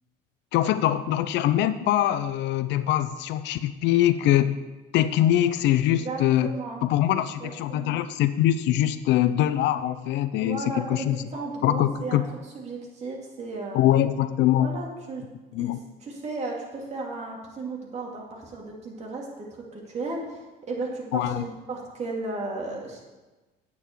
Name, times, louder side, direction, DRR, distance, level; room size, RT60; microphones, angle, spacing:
voice 1, 0.5-4.6 4.9-6.5 6.8-11.2 11.6-12.2 13.7-14.8 15.5-15.8 21.1-21.4, left 12 dB, 60° left, 12 dB, 0.6 m, -23 dB
voice 2, 6.0-6.8 7.4-8.0 10.4-12.2 12.5-13.8 14.5-15.2 15.6-15.7 16.0-23.0, right 3 dB, 35° right, -2 dB, 2.6 m, -35 dB
9.8 x 8.4 x 4.6 m, 1.2 s
cardioid pair, 125°, 20 cm